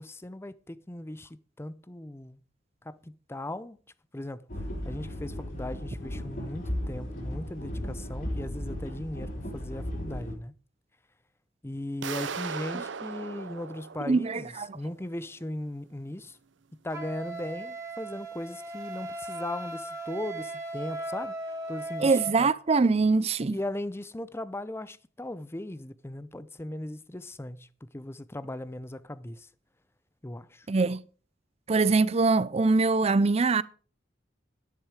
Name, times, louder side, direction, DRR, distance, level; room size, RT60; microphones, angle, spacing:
voice 1, 0.0-2.4 2.8-3.8 4.1-4.4 4.8-10.5 11.6-16.4 16.7-22.5 23.5-29.5 30.2-30.7, left 1 dB, 15° left, 0.6 m, -38 dB
sound 1, 4.5-10.3, equal, 50° left, 4.0 m, -35 dB
sound 2, 12.0-14.9, right 6 dB, 75° right, 0.7 m, -38 dB
voice 2, 14.0-14.7 22.0-23.6 30.7-31.0 31.7-33.6, right 3 dB, 35° right, 0.5 m, -23 dB
Wind instrument woodwind instrument, 16.9-22.4, right 2 dB, 20° right, 2.5 m, -37 dB
10.5 x 10.5 x 4.9 m
head